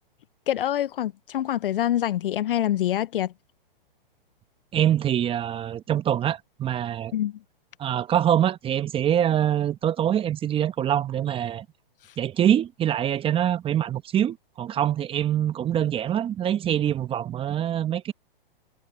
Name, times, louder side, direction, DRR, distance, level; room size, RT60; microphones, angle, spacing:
voice 1, 0.5-3.3 7.1-7.3, left 12 dB, 70° left, 0.7 m, -25 dB
voice 2, 4.7-7.1 7.8-11.6 12.2-18.1, right 10 dB, 20° right, 1.2 m, -24 dB
hypercardioid pair, 125°, 29 cm